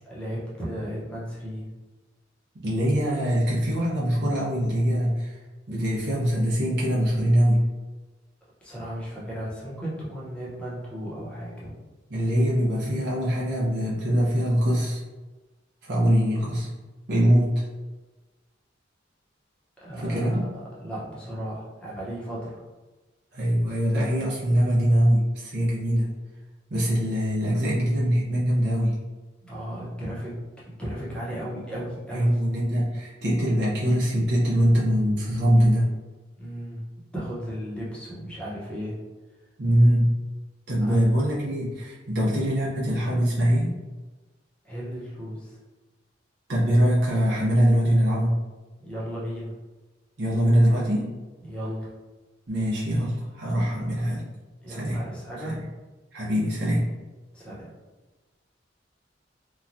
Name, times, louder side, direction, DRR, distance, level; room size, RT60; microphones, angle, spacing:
voice 1, 0.0-1.7 8.6-11.7 19.8-20.4 20.8-22.6 29.4-30.4 30.7-32.4 36.4-36.8 37.1-39.0 40.8-41.0 44.6-45.6 48.8-49.5 51.4-51.9 53.7-53.8 54.6-55.6 57.3-57.7, equal, 5° left, -7 dB, 0.8 m, -35 dB
voice 2, 2.6-5.3 5.7-7.6 12.1-15.0 15.9-16.7 17.1-17.6 20.0-20.4 23.3-26.1 26.7-29.0 32.1-35.9 39.6-40.1 40.7-43.7 46.5-48.3 50.2-51.1 52.5-54.2 54.7-55.0 55.4-55.6 56.1-56.8, equal, 60° right, -6 dB, 0.7 m, -23 dB
3.0 x 2.2 x 2.5 m, 1.2 s
head